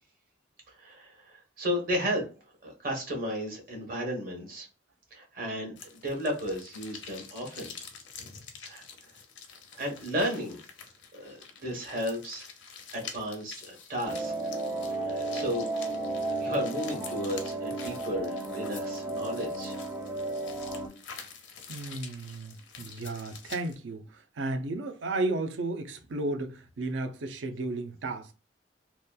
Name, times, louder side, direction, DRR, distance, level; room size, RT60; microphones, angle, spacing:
voice 1, 0.7-2.3 2.6-4.7 5.1-7.7 8.6-8.8 9.8-10.6 11.1-12.5 12.9-14.3 15.0-15.7 16.4-19.8, equal, 50° right, 1.0 m, -34 dB
sound 1, 5.8-23.8, left 6 dB, 70° left, 0.6 m, -47 dB
sound 2, 14.0-20.9, right 2 dB, 15° right, 0.5 m, -33 dB
voice 2, 21.7-28.3, right 2 dB, 75° right, 0.4 m, -33 dB
2.9 x 2.2 x 2.3 m
head